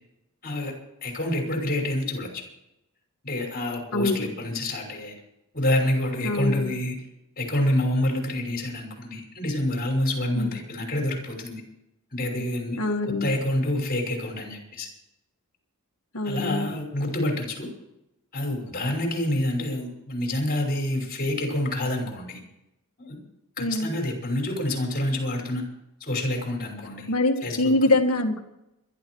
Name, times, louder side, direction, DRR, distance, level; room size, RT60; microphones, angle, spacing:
voice 1, 0.4-0.7 1.0-2.4 3.2-5.2 5.5-7.0 7.4-11.6 12.1-12.8 13.2-14.9 16.2-17.7 18.3-22.4 23.0-23.2 23.6-25.6 26.0-27.1 27.4-27.7, left 1 dB, 40° left, 2 dB, 6.0 m, -27 dB
voice 2, 3.9-4.3 6.2-6.7 10.4-10.5 12.8-13.3 16.1-16.7 23.6-23.9 27.1-28.4, left 2 dB, 75° left, 4 dB, 2.1 m, -24 dB
22.5 x 12.5 x 4.8 m, 0.86 s
head